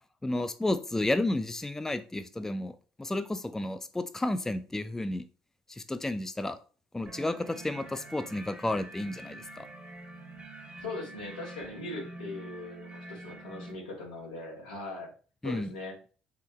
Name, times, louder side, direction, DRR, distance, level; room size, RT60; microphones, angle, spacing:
voice 1, 0.2-5.3 5.7-6.6 6.9-9.7 15.4-15.7, left 1 dB, 10° left, 0.3 m, -32 dB
sound 1, 7.1-13.7, right 2 dB, 30° right, 1.2 m, -46 dB
voice 2, 10.8-15.1 15.4-16.0, left 2 dB, 90° left, 1.0 m, -40 dB
3.8 x 2.1 x 3.3 m
hypercardioid pair, 55°, 4 cm